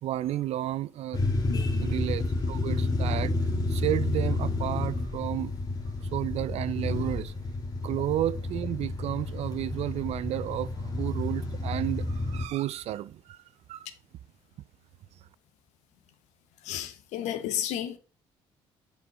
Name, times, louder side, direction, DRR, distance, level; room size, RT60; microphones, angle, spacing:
voice 1, 0.0-1.3 1.8-5.5 6.1-7.3 7.8-13.4 13.7-13.9, right 13 dB, 60° right, 0.4 m, -32 dB
sound 1, 1.1-12.4, left 2 dB, 30° left, 1.9 m, -30 dB
voice 2, 16.6-18.0, left 11 dB, 75° left, 0.9 m, -32 dB
7.1 x 4.2 x 4.2 m
hypercardioid pair, 60°, 12 cm